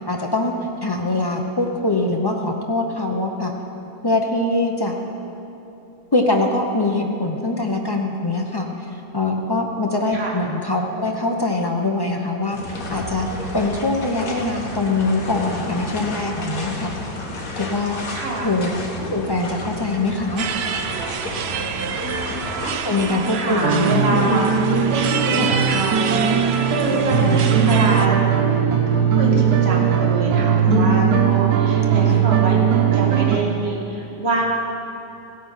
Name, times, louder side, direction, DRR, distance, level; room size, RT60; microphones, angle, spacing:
voice 1, 0.1-0.5 0.8-3.5 4.0-4.9 6.1-8.7 9.1-12.6 12.9-13.3 13.5-17.0 17.6-18.0 18.4-18.7 19.1-20.5 22.8-24.7 25.4-25.5 27.1-27.9 30.7-31.4 32.0-32.2, left 2 dB, 35° left, 1 dB, 0.3 m, -23 dB
sound 1, 12.5-22.7, left 2 dB, 55° left, 1.9 m, -32 dB
voice 2, 18.1-18.6 21.4-21.6 21.9-24.5 24.9-28.2 28.9-32.6 32.9-34.4, right 2 dB, 40° right, -3 dB, 2.0 m, -26 dB
sound 2, 20.4-28.1, right 6 dB, 85° right, 0.5 m, -27 dB
sound 3, 23.6-33.4, right 8 dB, 70° right, 1.2 m, -19 dB
16.0 x 8.7 x 5.6 m, 2.9 s
omnidirectional pair, 1.8 m